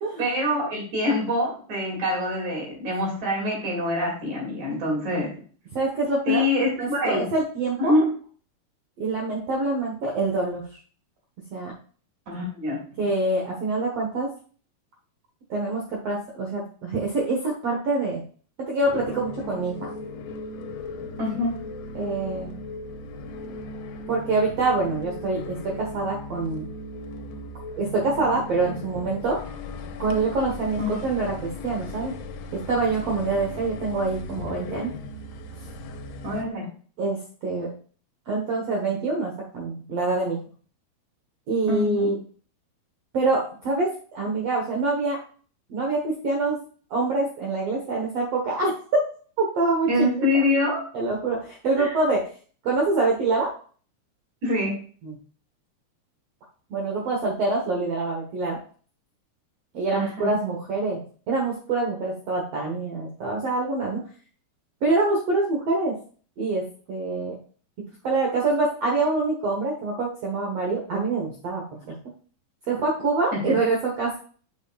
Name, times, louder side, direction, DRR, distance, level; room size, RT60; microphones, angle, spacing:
voice 1, 0.2-5.3 6.3-7.3 7.8-8.1 12.3-12.8 21.2-21.6 30.8-30.9 36.2-36.7 41.7-42.2 49.9-50.8 51.8-51.9 54.4-54.8 59.9-60.4 73.3-73.4, left 1 dB, 50° right, -3 dB, 3.3 m, -25 dB
voice 2, 5.7-6.5 6.8-7.9 9.0-10.6 11.5-11.7 13.0-14.3 15.5-18.2 18.6-19.9 21.9-22.5 24.1-26.7 27.8-29.4 30.0-32.1 32.5-34.9 37.0-37.7 38.3-40.4 41.5-42.1 43.1-45.2 45.7-46.6 46.9-48.7 49.4-49.9 50.9-52.2 52.6-53.5 55.0-55.1 56.7-58.6 59.7-64.0 64.8-66.0 66.4-67.4 68.0-71.9 72.7-74.2, right 3 dB, 80° right, -1 dB, 1.4 m, -25 dB
sound 1, 18.8-36.4, left 3 dB, 85° left, 2.8 m, -37 dB
7.9 x 6.4 x 2.3 m, 0.42 s
omnidirectional pair, 4.6 m